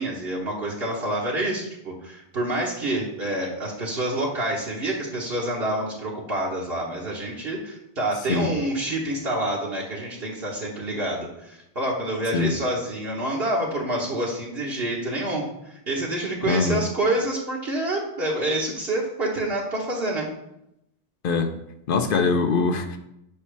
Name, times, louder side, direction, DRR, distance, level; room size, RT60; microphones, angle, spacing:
voice 1, 0.0-20.3, right 1 dB, 55° right, -4 dB, 1.4 m, -27 dB
voice 2, 16.4-16.8 21.2-21.5 21.9-23.0, left 4 dB, 55° left, 7 dB, 0.8 m, -22 dB
8.6 x 5.6 x 3.4 m, 0.82 s
omnidirectional pair, 1.2 m